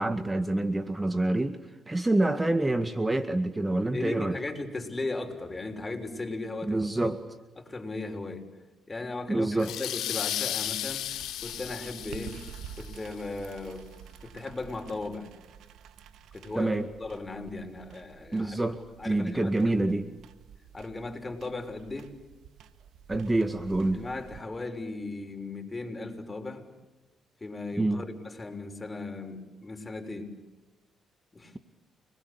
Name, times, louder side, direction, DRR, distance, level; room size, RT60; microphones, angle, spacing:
voice 1, 0.0-1.6 1.9-4.4 6.6-7.2 9.3-9.7 16.6-16.9 18.3-20.1 23.1-24.0 27.8-28.0, right 2 dB, 20° right, 10 dB, 1.9 m, -27 dB
voice 2, 3.9-7.1 7.6-8.5 8.9-12.4 12.8-13.9 14.2-15.3 16.3-16.7 17.0-18.6 19.0-19.8 20.7-22.1 23.9-26.6 27.4-30.3 31.3-31.5, left 2 dB, 25° left, 4 dB, 6.3 m, -37 dB
sound 1, 9.6-13.0, left 12 dB, 75° left, 1.4 m, -34 dB
sound 2, 10.6-24.4, right 8 dB, 75° right, 1.7 m, -49 dB
29.5 x 21.5 x 8.5 m, 1.1 s
hypercardioid pair, 50°, 0 cm